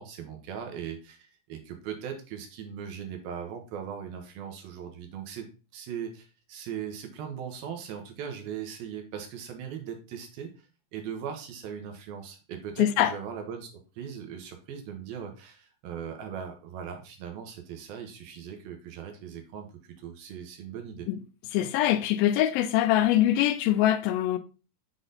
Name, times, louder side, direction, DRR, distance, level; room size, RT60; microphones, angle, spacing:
voice 1, 0.0-10.5 10.9-13.7 14.0-21.1, right 8 dB, 85° right, 3.0 m, -39 dB
voice 2, 12.8-13.1 21.1-21.2 21.5-24.4, left 13 dB, 90° left, 2.4 m, -23 dB
6.9 x 4.1 x 3.9 m
omnidirectional pair, 4.1 m